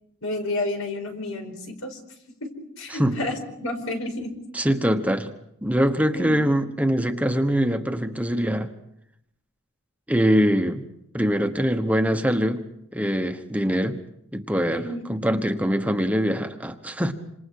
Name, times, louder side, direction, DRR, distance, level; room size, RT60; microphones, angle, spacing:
voice 1, 0.2-2.0 2.4-4.3 6.1-6.4 14.7-15.0, left 2 dB, 85° left, 4 dB, 5.1 m, -30 dB
voice 2, 4.5-5.3 5.6-8.7 10.1-10.8 11.1-12.6 12.9-14.0 14.3-17.1, equal, 5° right, 7 dB, 1.2 m, -23 dB
27.5 x 26.5 x 4.7 m, 0.76 s
head